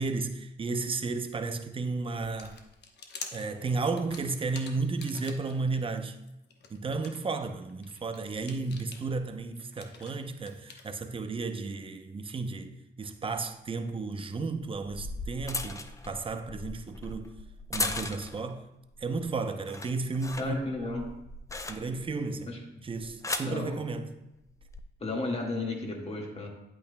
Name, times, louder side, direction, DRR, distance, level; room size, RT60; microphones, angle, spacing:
voice 1, 0.0-2.6 3.3-6.2 6.7-17.3 17.7-18.7 19.0-21.1 21.7-22.5 22.8-24.1, right 3 dB, 25° right, 0.6 m, -33 dB
sound 1, 2.2-5.8 6.2-10.9, left 5 dB, 60° left, 1.0 m, -47 dB
sound 2, 14.5-18.5 18.9-19.3 19.6-22.2 22.9-23.6 24.5-24.8, left 2 dB, 15° left, 0.5 m, -37 dB
voice 2, 20.4-21.1 22.5-22.6 23.4-23.8 25.0-26.5, left 2 dB, 30° left, 1.7 m, -33 dB
8.7 x 8.5 x 2.2 m
cardioid pair, 90°, 20 cm